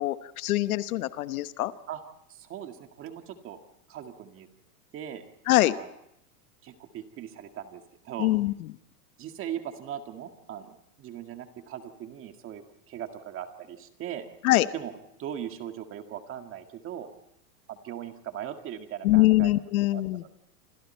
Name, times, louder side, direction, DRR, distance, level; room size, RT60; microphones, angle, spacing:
voice 1, 0.0-1.7 5.5-5.7 8.2-8.5 14.4-14.7 19.0-20.2, left 17 dB, 60° left, 13 dB, 1.1 m, -23 dB
voice 2, 2.3-3.6 3.9-4.5 4.9-5.2 5.7-5.9 6.6-8.3 9.2-14.3 14.7-14.9 15.2-17.1 17.7-19.5 19.9-20.4, right 10 dB, 25° right, 6 dB, 2.0 m, -39 dB
28.5 x 27.0 x 4.4 m, 0.77 s
supercardioid pair, 150°, 49 cm